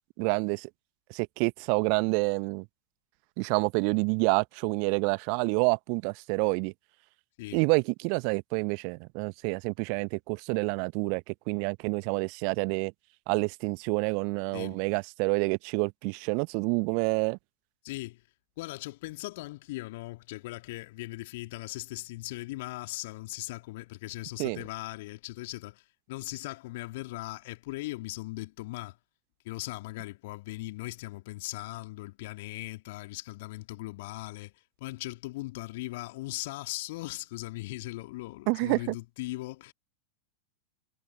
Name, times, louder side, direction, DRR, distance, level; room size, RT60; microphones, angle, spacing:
voice 1, 0.2-0.7 1.1-2.6 3.4-6.7 7.5-12.9 13.3-17.4 24.4-24.6 38.5-38.9, right 40 dB or more, 45° right, 1.3 m, -28 dB
voice 2, 17.8-18.2 18.6-25.8 26.1-29.0 29.4-34.5 34.8-39.7, left 20 dB, 50° left, 3.0 m, -39 dB
figure-of-eight pair, 90°, 0 cm